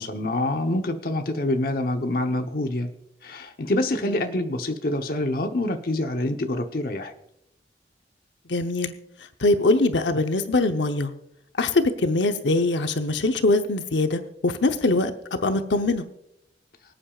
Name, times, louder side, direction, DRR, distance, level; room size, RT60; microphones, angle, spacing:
voice 1, 0.0-2.9 3.2-7.1, left 1 dB, 55° left, 5 dB, 0.9 m, -26 dB
voice 2, 8.5-8.9 9.4-11.1 11.6-16.1, left 2 dB, 85° left, 7 dB, 0.8 m, -23 dB
25.0 x 8.8 x 2.4 m, 0.80 s
head